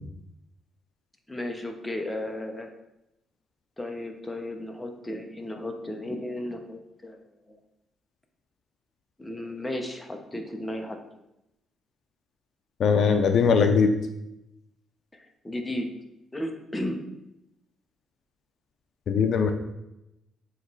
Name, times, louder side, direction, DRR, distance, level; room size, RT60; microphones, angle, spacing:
voice 1, 1.3-2.7 3.8-7.2 7.5-7.6 9.2-11.0 15.1-15.9 16.3-17.0, left 1 dB, 10° left, 3 dB, 0.9 m, -34 dB
voice 2, 12.8-13.9 19.1-19.5, left 5 dB, 65° left, 6 dB, 0.6 m, -20 dB
7.6 x 3.1 x 4.1 m, 0.87 s
cardioid pair, 90°, 0 cm